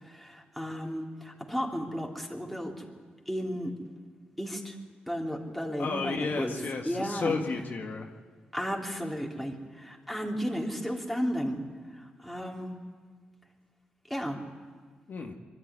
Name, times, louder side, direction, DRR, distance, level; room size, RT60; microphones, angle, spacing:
voice 1, 0.0-2.9 3.3-3.7 4.4-4.8 5.1-6.6 6.8-7.4 8.5-11.6 11.9-12.8 14.1-14.4, equal, ahead, -1 dB, 3.3 m, -33 dB
voice 2, 5.8-8.1 15.1-15.3, left 4 dB, 60° left, 2 dB, 1.6 m, -33 dB
23.0 x 12.5 x 9.6 m, 1.5 s
cardioid pair, 70°, 3 cm